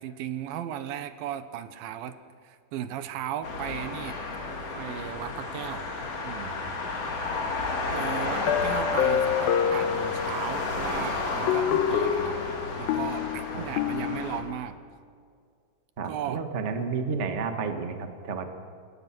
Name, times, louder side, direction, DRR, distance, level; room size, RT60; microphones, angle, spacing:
voice 1, 0.0-2.2 2.4-4.2 4.8-5.9 6.2-6.5 7.9-12.4 12.8-14.8 16.0-16.4, right 10 dB, 80° right, 11 dB, 2.8 m, -36 dB
sound 1, 3.4-14.4, left 3 dB, 45° left, 3.7 m, -32 dB
sound 2, 8.5-10.7 11.5-14.6, left 9 dB, 85° left, 2.7 m, -27 dB
voice 2, 16.0-18.5, right 5 dB, 40° right, 5 dB, 0.9 m, -31 dB
26.5 x 21.5 x 6.1 m, 2.2 s
omnidirectional pair, 4.2 m